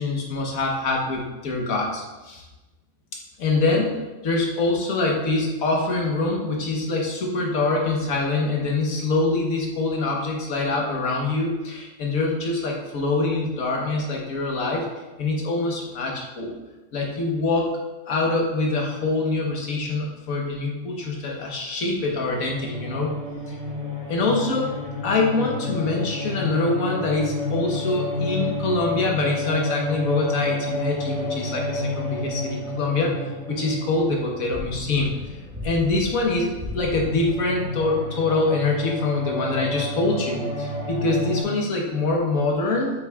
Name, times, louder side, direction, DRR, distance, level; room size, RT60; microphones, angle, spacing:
voice 1, 0.0-2.4 3.4-3.9 4.2-14.9 15.2-16.5 16.9-17.7 18.1-23.2 23.5-23.6 24.1-24.8 25.0-33.1 33.5-35.1 35.6-42.9, left 3 dB, 85° left, -1 dB, 1.6 m, -24 dB
sound 1, 22.2-41.4, left 2 dB, 25° right, 1.8 m, -30 dB
7.2 x 5.9 x 2.3 m, 1.1 s
omnidirectional pair, 1.4 m